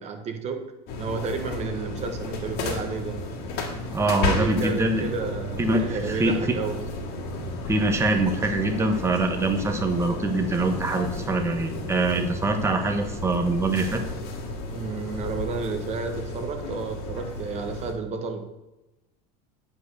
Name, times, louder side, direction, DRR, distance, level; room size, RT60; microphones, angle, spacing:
voice 1, 0.0-3.3 4.2-6.8 14.7-18.5, right 4 dB, 35° right, 6 dB, 1.4 m, -31 dB
sound 1, 0.9-17.9, left 2 dB, 55° left, 2.5 m, -33 dB
voice 2, 3.9-5.0 5.6-6.4 7.7-14.0, right 2 dB, 15° right, 5 dB, 1.1 m, -24 dB
9.1 x 5.3 x 6.5 m, 0.97 s
supercardioid pair, 140°, 20 cm